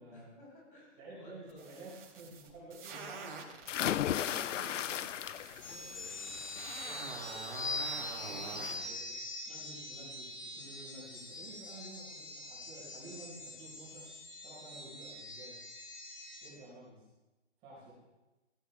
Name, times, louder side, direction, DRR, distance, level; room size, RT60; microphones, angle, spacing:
voice 1, 0.1-1.8 2.7-3.2 4.1-5.1 5.4-7.9 8.2-9.2, equal, 45° left, -2 dB, 6.2 m, -56 dB
voice 2, 1.0-3.3 3.9-4.8 8.1-8.9 9.5-14.1 14.4-15.6 16.4-17.1 17.6-17.9, right 2 dB, 15° right, -7 dB, 4.3 m, -51 dB
sound 1, 1.5-3.7 4.1-8.8, right 5 dB, 50° right, 3.9 m, -46 dB
sound 2, 3.7-5.8 6.2-6.6 8.0-8.1 8.5-8.6, left 11 dB, 80° left, 0.5 m, -34 dB
sound 3, 5.6-16.5, left 2 dB, 25° left, 1.4 m, -43 dB
16.0 x 15.5 x 3.4 m, 1.1 s
hypercardioid pair, 175°, 37 cm